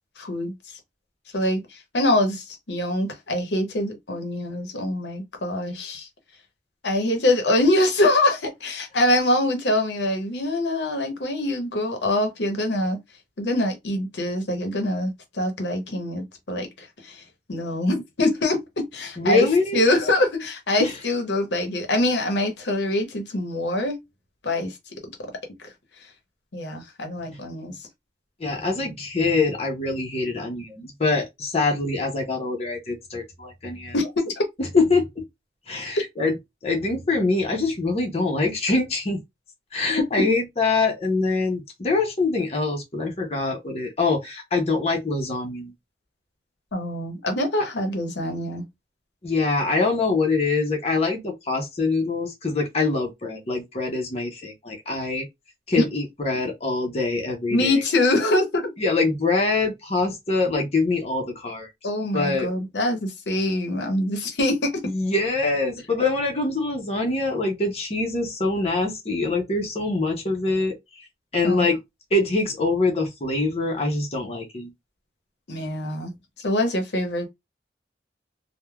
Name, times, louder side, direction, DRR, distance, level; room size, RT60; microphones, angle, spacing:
voice 1, 0.2-0.5 1.3-6.1 6.8-13.0 13.4-17.2 17.5-19.5 19.7-24.0 24.4-24.7 26.5-27.7 33.9-34.4 46.7-48.6 55.8-55.9 57.5-58.7 61.8-64.9 71.4-71.7 75.5-76.1 76.4-77.3, left 1 dB, 80° left, 0.8 m, -24 dB
voice 2, 19.2-19.8 20.8-21.0 28.4-33.9 34.6-35.0 35.7-36.3 36.6-39.2 39.7-45.7 49.2-55.3 55.7-57.8 58.8-61.7 62.1-62.5 64.8-70.7 71.3-71.8 72.1-74.7, left 3 dB, 35° left, 0.7 m, -24 dB
3.2 x 2.1 x 2.2 m
head